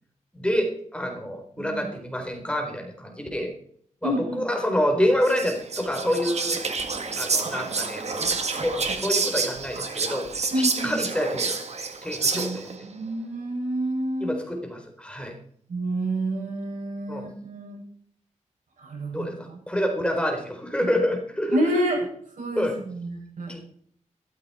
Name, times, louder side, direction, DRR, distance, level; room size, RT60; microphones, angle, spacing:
voice 1, 0.3-3.5 4.0-6.6 7.2-10.3 10.6-11.6 12.0-12.5 14.2-15.3 17.1-17.3 19.1-21.6 22.5-22.8 23.5-23.6, equal, 10° left, 2 dB, 4.0 m, -27 dB
voice 2, 4.0-4.4 7.7-7.8 10.5-11.0 12.3-14.4 15.7-17.8 18.8-19.6 21.5-22.0 22.4-23.5, right 1 dB, 85° right, -1 dB, 6.9 m, -29 dB
Whispering, 5.2-12.8, right 4 dB, 60° right, 1.9 m, -28 dB
14.5 x 13.0 x 4.4 m, 0.62 s
wide cardioid pair, 85°, 13 cm